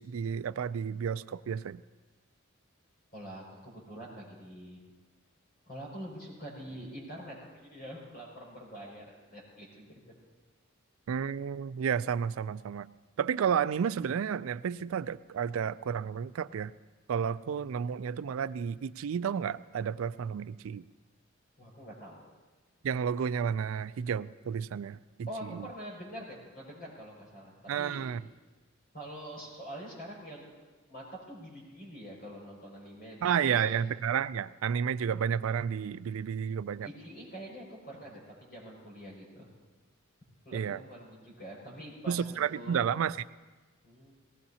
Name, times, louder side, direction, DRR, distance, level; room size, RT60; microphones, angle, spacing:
voice 1, 0.0-1.8 11.1-12.9 13.2-16.7 17.1-20.8 22.8-25.0 25.4-25.7 27.7-28.2 33.2-36.9 40.5-40.8 42.1-43.2, right 7 dB, 75° right, 16 dB, 0.3 m, -31 dB
voice 2, 3.1-4.8 5.7-10.0 21.6-22.2 25.3-28.0 28.9-30.5 30.9-33.8 36.8-39.5 40.4-42.8 43.8-44.1, equal, 45° left, -3 dB, 5.9 m, -45 dB
19.0 x 18.0 x 2.8 m, 1.3 s
head